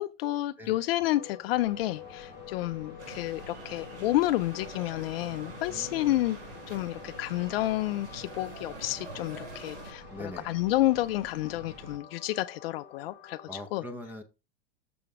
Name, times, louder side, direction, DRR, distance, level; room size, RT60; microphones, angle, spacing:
voice 1, 0.0-6.4 6.7-13.8, left 16 dB, 55° left, 0.5 m, -30 dB
sound 1, 1.0-13.6, left 11 dB, 25° left, 1.2 m, -49 dB
sound 2, 1.5-12.0, right 2 dB, 30° right, 1.0 m, -49 dB
sound 3, 3.0-9.9, right 3 dB, 65° right, 4.6 m, -46 dB
voice 2, 5.7-6.1 10.1-10.5 13.5-14.2, left 1 dB, 5° right, 0.6 m, -42 dB
6.9 x 5.1 x 3.6 m
supercardioid pair, 145°, 36 cm